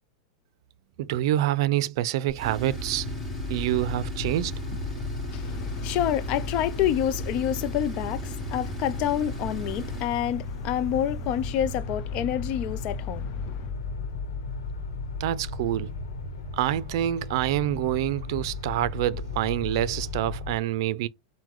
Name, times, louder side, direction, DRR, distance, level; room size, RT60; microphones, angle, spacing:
voice 1, 1.0-3.1 3.5-4.8 15.2-15.9 16.5-21.1, right 13 dB, 65° right, 0.4 m, -27 dB
Tools, 2.3-11.8, right 2 dB, 5° left, 2.7 m, -39 dB
sound 1, 2.7-20.6, left 3 dB, 85° left, 1.0 m, -35 dB
voice 2, 5.3-13.7, left 11 dB, 45° left, 0.5 m, -28 dB
4.6 x 2.2 x 3.8 m
supercardioid pair, 135°, 3 cm